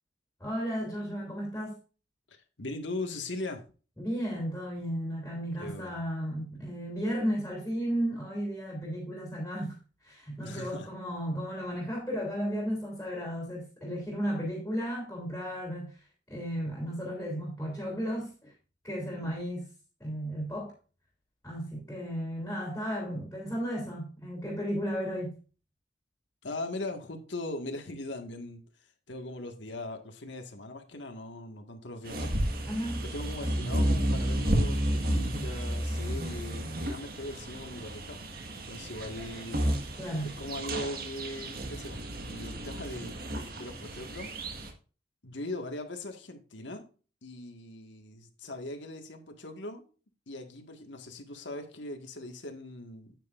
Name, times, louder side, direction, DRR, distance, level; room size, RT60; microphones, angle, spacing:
voice 1, 0.4-1.8 4.0-9.7 10.0-15.9 16.3-18.5 18.8-19.7 20.0-20.7 21.4-25.3 32.6-33.0 40.0-40.3, equal, 15° left, 3.1 m, -34 dB
voice 2, 2.3-3.6 5.6-6.1 10.4-10.9 26.4-32.3 33.0-38.2 38.7-39.7 40.2-42.0 42.3-43.2 43.6-44.3 45.2-46.8 47.2-49.9 50.3-53.2, left 2 dB, 80° left, 1.7 m, -40 dB
sound 1, 32.0-44.7, right 1 dB, 50° right, 1.6 m, -32 dB
9.4 x 9.2 x 2.5 m
head